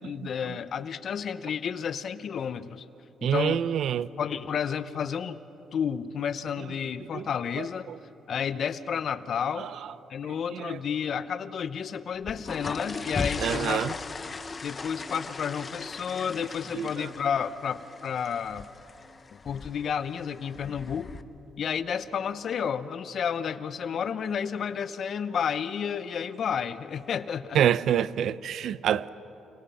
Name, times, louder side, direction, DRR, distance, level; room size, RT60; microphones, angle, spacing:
voice 1, 0.0-2.8 3.2-3.6 4.2-5.4 5.7-7.9 8.3-9.7 10.1-13.8 14.6-18.7 19.4-21.1 21.6-27.6, left 7 dB, 60° left, 1.0 m, -31 dB
voice 2, 3.2-4.1 7.1-7.2 10.5-10.8 13.4-13.9 16.8-16.9 27.5-29.1, right 9 dB, 70° right, 0.6 m, -26 dB
sound 1, 12.1-21.2, left 4 dB, 30° left, 1.1 m, -38 dB
30.0 x 27.0 x 5.7 m
cardioid pair, 90°, 0 cm